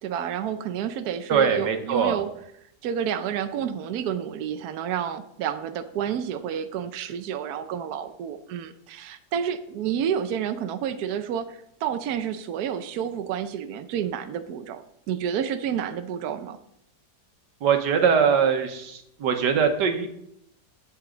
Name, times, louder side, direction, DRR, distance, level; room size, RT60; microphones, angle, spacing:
voice 1, 0.0-2.3 2.8-16.6, right 8 dB, 70° right, 8 dB, 1.1 m, -30 dB
voice 2, 1.3-2.2 17.6-20.1, right 7 dB, 90° right, 6 dB, 1.7 m, -22 dB
9.9 x 8.4 x 3.8 m, 0.75 s
omnidirectional pair, 1.8 m